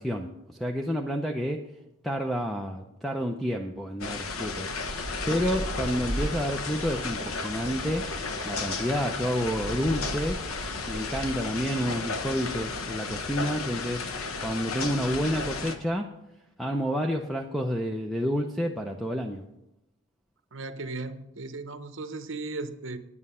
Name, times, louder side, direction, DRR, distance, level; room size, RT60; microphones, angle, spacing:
voice 1, 0.0-1.7 2.0-8.1 8.4-10.4 10.9-14.0 14.4-16.1 16.6-19.4, equal, ahead, 3 dB, 0.5 m, -29 dB
sound 1, 4.0-15.8, left 4 dB, 85° left, 1.0 m, -34 dB
sound 2, 4.9-11.4, right 1 dB, 35° right, 1.8 m, -38 dB
voice 2, 20.5-23.0, right 3 dB, 60° right, 10 dB, 0.8 m, -36 dB
9.7 x 9.5 x 5.5 m, 0.88 s
head